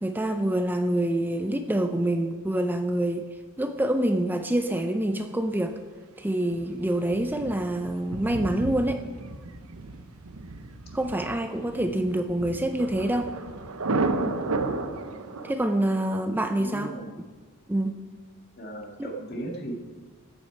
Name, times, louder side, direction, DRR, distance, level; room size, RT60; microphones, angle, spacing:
voice 1, 0.0-3.3 3.6-5.8 6.2-9.0 10.9-13.3 15.4-16.9 17.7-18.0 19.0-19.1, right 1 dB, 10° right, 7 dB, 0.5 m, -26 dB
Thunder, 6.5-15.5, right 3 dB, 85° right, 0.9 m, -33 dB
voice 2, 11.7-12.1 16.6-17.1 18.6-19.7, right 1 dB, 50° left, 1 dB, 1.9 m, -36 dB
13.5 x 9.0 x 4.6 m, 1.4 s
head